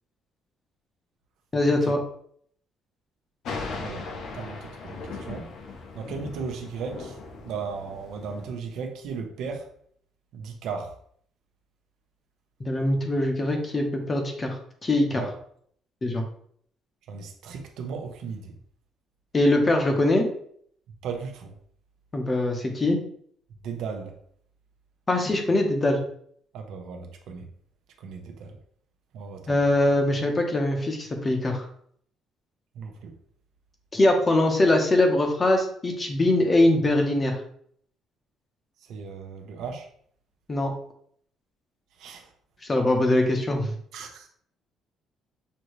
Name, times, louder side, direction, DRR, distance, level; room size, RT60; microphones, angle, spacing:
voice 1, 1.5-2.0 12.6-14.6 14.8-15.2 16.0-16.2 19.3-20.3 22.1-23.0 25.1-26.0 29.5-31.7 33.9-37.4 40.5-40.7 42.6-43.7, left 1 dB, 20° left, 3 dB, 0.7 m, -22 dB
Thunder, 3.4-8.5, left 4 dB, 55° left, 0.6 m, -38 dB
voice 2, 4.3-5.5 5.9-7.1 7.4-9.6 10.3-10.9 15.1-15.4 17.1-18.6 21.0-21.5 23.6-24.1 26.5-27.4 28.0-28.5 29.1-29.6 32.8-33.1 38.9-39.9 42.0-42.2 43.9-44.3, right 5 dB, 70° right, 4 dB, 0.8 m, -36 dB
6.3 x 2.7 x 3.1 m, 0.63 s
cardioid pair, 180°, 0 cm